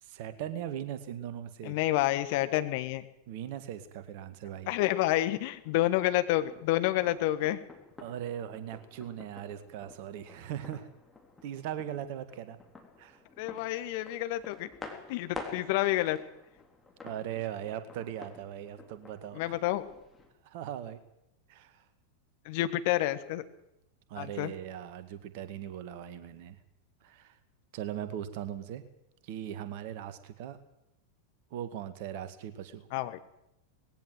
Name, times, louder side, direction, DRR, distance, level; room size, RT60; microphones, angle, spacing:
voice 1, 0.0-1.8 3.3-4.7 8.0-10.9 11.4-12.6 13.0-13.2 17.0-19.6 20.4-21.0 21.5-21.9 24.1-26.6 27.0-27.4 27.7-28.8 29.2-30.6 31.5-32.9, right 10 dB, 50° right, 12 dB, 1.9 m, -39 dB
voice 2, 1.6-3.0 4.7-7.6 13.4-14.7 15.1-16.2 19.3-19.8 22.4-23.4 24.2-24.5 32.9-33.2, left 15 dB, 50° left, 11 dB, 1.5 m, -29 dB
sound 1, 5.4-20.3, left 3 dB, 10° left, 3.5 m, -50 dB
19.5 x 16.5 x 7.9 m, 0.84 s
figure-of-eight pair, 90°, 0 cm